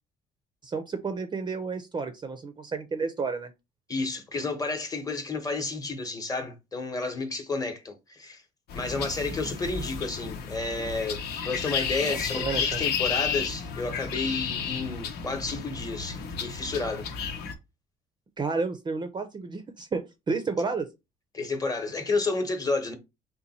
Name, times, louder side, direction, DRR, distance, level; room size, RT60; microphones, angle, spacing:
voice 1, 0.6-3.5 12.0-12.8 18.4-20.9, right 4 dB, 25° right, 0.5 m, -31 dB
voice 2, 3.9-8.4 8.7-17.0 21.3-22.9, left 3 dB, 20° left, 1.0 m, -31 dB
sound 1, 8.7-17.5, left 6 dB, 70° left, 0.8 m, -32 dB
3.9 x 2.2 x 4.1 m
cardioid pair, 110°, 17 cm